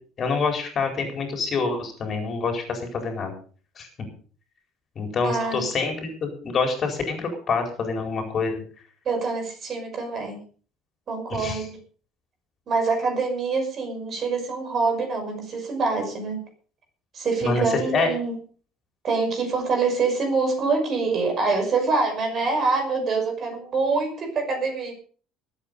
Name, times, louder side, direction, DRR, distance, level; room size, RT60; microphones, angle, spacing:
voice 1, 0.2-3.3 3.8-3.9 5.0-6.1 6.4-8.6 11.3-11.6 17.4-18.1, left 4 dB, 35° left, 4 dB, 4.4 m, -26 dB
voice 2, 5.2-5.7 9.1-10.4 11.1-11.8 12.7-16.4 17.1-18.4 19.0-24.9, right 4 dB, 35° right, 4 dB, 5.7 m, -25 dB
20.5 x 8.8 x 5.4 m, 0.42 s
cardioid pair, 145°, 0 cm